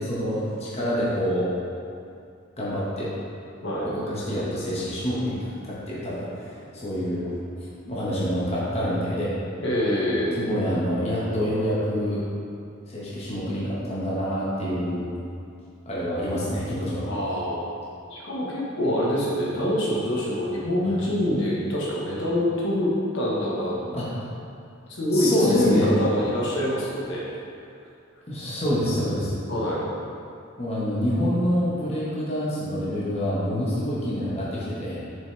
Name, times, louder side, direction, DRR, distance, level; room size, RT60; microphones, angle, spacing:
voice 1, 0.0-1.5 2.6-3.1 3.8-6.5 6.7-7.3 7.6-9.3 10.4-12.2 12.9-15.0 15.8-17.0 20.8-20.9 23.9-24.1 25.1-25.9 28.3-29.3 30.6-35.0, equal, 30° left, -8 dB, 1.3 m, -27 dB
voice 2, 9.6-10.4 17.0-17.6 18.1-23.9 24.9-27.3 29.5-29.9, left 1 dB, 60° left, -6 dB, 1.4 m, -25 dB
7.1 x 6.1 x 3.4 m, 2.5 s
head